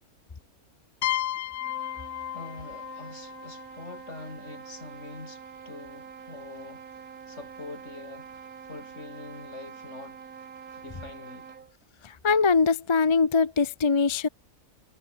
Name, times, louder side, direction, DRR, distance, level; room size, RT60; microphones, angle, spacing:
sound 1, 1.0-4.6, left 13 dB, 65° left, 0.9 m, -34 dB
sound 2, 1.5-11.8, right 6 dB, 75° right, 2.1 m, -45 dB
voice 1, 2.3-6.9 7.3-10.2 10.8-11.6, left 3 dB, 50° left, 3.6 m, -44 dB
voice 2, 12.0-14.3, left 4 dB, 30° left, 0.5 m, -22 dB
omnidirectional pair, 1.6 m